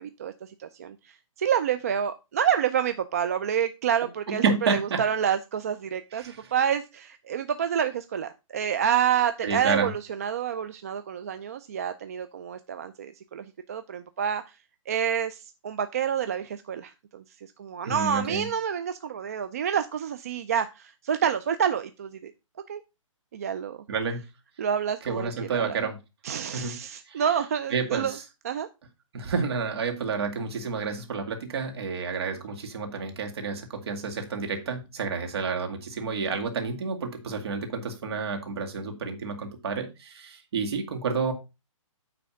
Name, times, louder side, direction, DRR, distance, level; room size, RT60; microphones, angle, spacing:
voice 1, 0.0-14.6 14.9-22.3 22.7-22.8 23.3-23.8 24.6-25.8 26.2-28.2 28.4-28.7, right 8 dB, 30° right, 10 dB, 0.3 m, -28 dB
voice 2, 4.3-5.0 6.1-6.4 9.4-9.9 17.8-18.5 23.9-24.2 25.1-26.0 26.5-26.8 27.1-27.2 27.7-28.2 29.1-41.3, right 5 dB, 50° right, 4 dB, 2.0 m, -30 dB
9.2 x 3.4 x 6.3 m, 0.27 s
hypercardioid pair, 165°, 17 cm